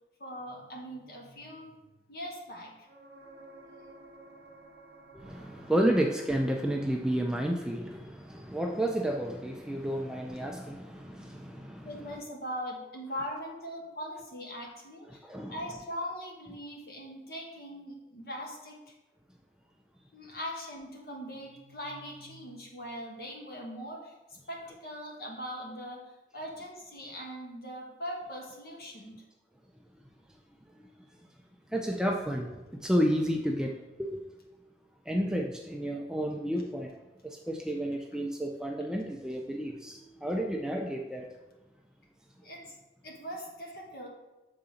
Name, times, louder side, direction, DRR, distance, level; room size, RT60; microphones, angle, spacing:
voice 1, 0.2-1.8 2.1-2.9 5.1-5.7 11.8-18.8 20.1-24.1 24.5-29.2 42.4-42.8 43.0-44.1, equal, 55° left, -1 dB, 1.2 m, -41 dB
sound 1, 2.8-6.6 10.3-10.4, right 2 dB, 65° right, 0.7 m, -53 dB
voice 2, 5.1-12.2 15.2-15.6 21.8-21.9 30.8-30.9 31.7-34.2 35.1-36.9 37.2-41.3, equal, 5° right, 1 dB, 0.4 m, -31 dB
7.1 x 3.9 x 3.8 m, 1.1 s
head